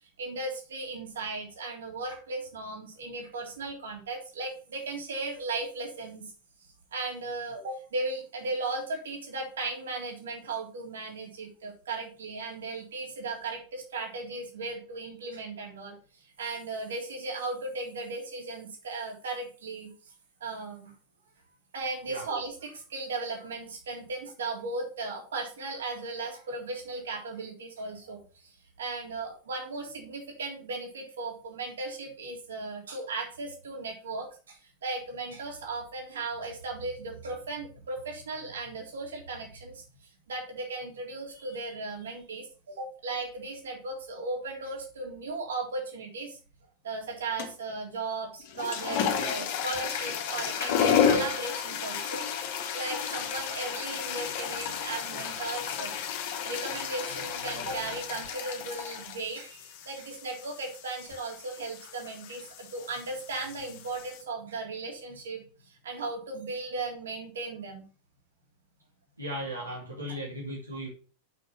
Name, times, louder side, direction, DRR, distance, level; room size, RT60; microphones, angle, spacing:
voice 1, 0.2-6.3 6.9-19.9 20.4-20.9 21.7-39.8 40.3-46.4 46.8-52.3 52.7-56.0 56.4-67.8 70.1-70.2, right 3 dB, 65° right, 1 dB, 3.5 m, -36 dB
sound 1, 47.4-47.7 48.4-64.2, left 8 dB, 50° left, 1.7 m, -32 dB
voice 2, 69.2-70.9, equal, 85° right, -4 dB, 2.5 m, -36 dB
7.6 x 6.1 x 5.8 m, 0.38 s
figure-of-eight pair, 90°, 0 cm